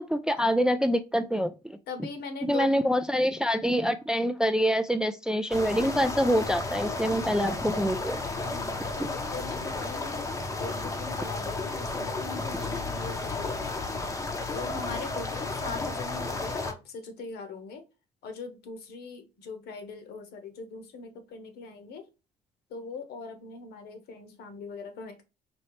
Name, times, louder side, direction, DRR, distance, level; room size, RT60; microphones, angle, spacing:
voice 1, 0.0-1.5 2.4-8.2 9.0-9.1, equal, 5° right, 9 dB, 0.3 m, -26 dB
voice 2, 1.9-2.7 8.4-10.2 10.6-14.1 14.5-17.8 18.2-22.0 22.7-25.3, left 4 dB, 70° left, 7 dB, 1.1 m, -40 dB
sound 1, 5.5-16.7, left 3 dB, 20° left, 0.7 m, -33 dB
4.3 x 2.8 x 3.1 m, 0.28 s
cardioid pair, 110°, 17 cm